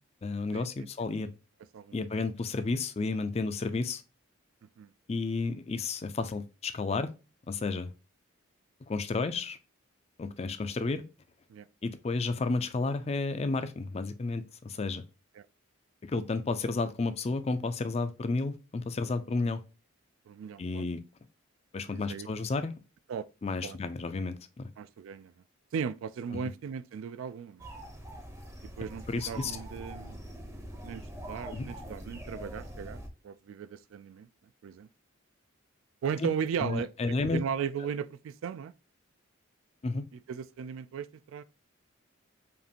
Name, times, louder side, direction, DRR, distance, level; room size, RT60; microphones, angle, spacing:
voice 1, 0.2-1.3 1.9-4.0 5.1-7.1 7.5-7.9 8.9-9.6 10.2-11.0 11.8-15.0 16.0-19.6 20.6-21.0 21.7-22.8 23.4-24.7 29.1-29.6 31.5-31.7 36.2-36.3 36.6-37.4 39.8-40.1, left 3 dB, 30° left, 0.4 m, -32 dB
voice 2, 20.3-20.8 21.9-22.3 23.1-23.3 23.6-23.8 24.8-25.3 25.7-27.7 28.8-30.2 30.8-33.0 33.2-34.3 34.6-34.9 36.0-36.9 37.2-38.7 40.3-41.4, right 7 dB, 75° right, 0.3 m, -36 dB
sound 1, 27.6-33.1, equal, 15° right, 0.6 m, -43 dB
5.2 x 2.5 x 2.8 m
head